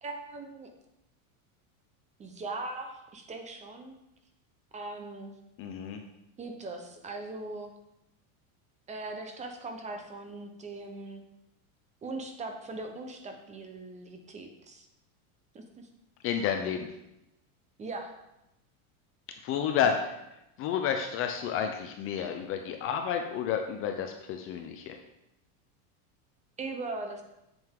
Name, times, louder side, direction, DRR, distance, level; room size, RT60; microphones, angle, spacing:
voice 1, 0.0-0.7 2.2-3.9 4.7-5.3 6.4-7.7 8.9-11.2 12.0-14.9 15.5-15.9 17.8-18.1 19.8-20.0 26.6-27.2, right 2 dB, 15° right, 5 dB, 0.7 m, -40 dB
voice 2, 5.6-6.0 16.2-16.9 19.4-20.2 20.6-24.9, left 8 dB, 30° left, 5 dB, 0.5 m, -30 dB
7.8 x 7.7 x 3.6 m, 0.88 s
supercardioid pair, 155°, 43 cm